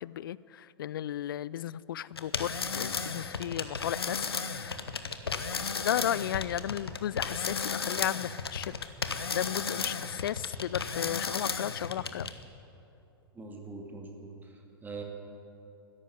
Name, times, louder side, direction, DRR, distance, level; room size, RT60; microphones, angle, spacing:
voice 1, 0.0-4.3 5.6-8.7 9.3-12.3, left 11 dB, 60° left, 20 dB, 0.4 m, -34 dB
sound 1, 2.1-12.4, left 5 dB, 75° left, 1.1 m, -34 dB
voice 2, 13.3-15.0, right 3 dB, 15° right, 1 dB, 2.4 m, -43 dB
13.5 x 11.0 x 9.8 m, 2.9 s
figure-of-eight pair, 100°, 13 cm